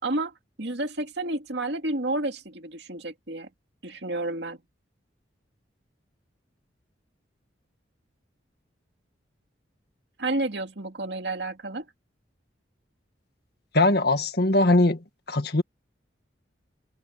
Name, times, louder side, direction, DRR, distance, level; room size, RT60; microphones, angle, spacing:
voice 1, 0.0-3.5 3.8-4.6 10.2-11.8, right 2 dB, 60° right, 2.4 m, -30 dB
voice 2, 13.7-15.0 15.3-15.6, left 2 dB, 55° left, 1.9 m, -20 dB
open air
head